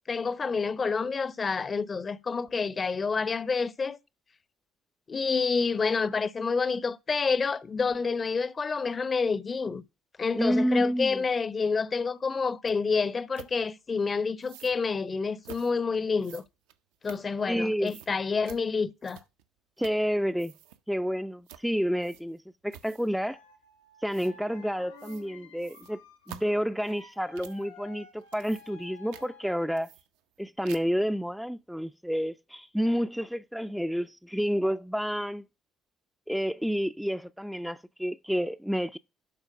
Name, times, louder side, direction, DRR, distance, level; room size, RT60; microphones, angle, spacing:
voice 1, 0.1-4.0 5.1-9.8 10.2-16.4 17.0-19.2, left 4 dB, 35° left, 0.7 m, -28 dB
voice 2, 10.4-11.2 17.5-17.9 19.8-20.5 20.9-23.4 24.0-26.0 26.3-29.9 30.4-35.4 36.3-39.0, equal, ahead, 0.4 m, -29 dB
sound 1, 12.7-12.8 13.3-13.5 14.4-14.8 15.4-15.7 16.2-17.6 17.9-18.1 18.5-18.6 19.0-19.5 19.8-20.1 20.3-20.8 21.5-21.7 22.0-22.4 22.7-23.2 24.1-24.3 25.0-25.3 25.6-27.7 28.1-28.9 29.1-29.3 29.8-30.4 30.7-31.0, right 10 dB, 70° right, 0.7 m, -49 dB
sound 2, 23.2-29.7, left 4 dB, 80° left, 1.7 m, -52 dB
11.5 x 4.3 x 5.9 m
figure-of-eight pair, 50°, 0 cm